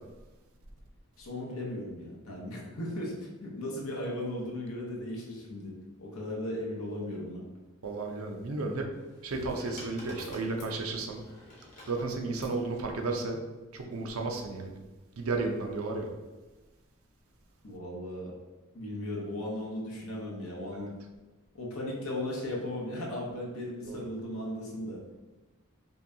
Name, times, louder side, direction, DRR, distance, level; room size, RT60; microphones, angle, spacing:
voice 1, 1.2-5.7 6.0-7.4 17.6-18.3 18.7-20.9 21.5-25.0, left 1 dB, 80° left, -2 dB, 1.0 m, -36 dB
voice 2, 7.8-8.8 9.2-11.2 11.9-13.4 13.7-14.7 15.2-16.1 23.8-24.1, right 3 dB, 75° right, 2 dB, 0.6 m, -33 dB
sound 1, 8.9-12.6 13.6-14.0, left 1 dB, 35° left, 1.1 m, -49 dB
5.4 x 2.3 x 2.7 m, 1.2 s
head